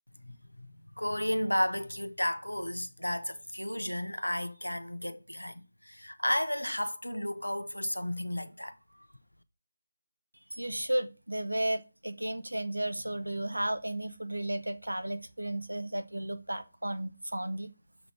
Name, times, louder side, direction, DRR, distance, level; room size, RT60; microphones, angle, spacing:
voice 1, 0.2-0.7 1.0-9.1, left 1 dB, 85° left, 0.9 m, -33 dB
voice 2, 10.5-17.7, right 1 dB, 80° right, 1.1 m, -33 dB
7.2 x 3.9 x 4.7 m
figure-of-eight pair, 155°, 0 cm